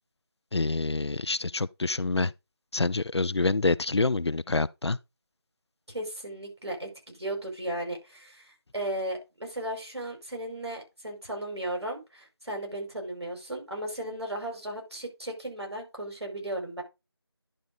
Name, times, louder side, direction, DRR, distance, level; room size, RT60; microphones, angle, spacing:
voice 1, 0.5-2.3 2.7-5.0, left 3 dB, 85° left, 0.5 m, -27 dB
voice 2, 5.9-16.8, right 1 dB, 80° right, 5.4 m, -35 dB
11.0 x 5.0 x 3.8 m
figure-of-eight pair, 175°, 14 cm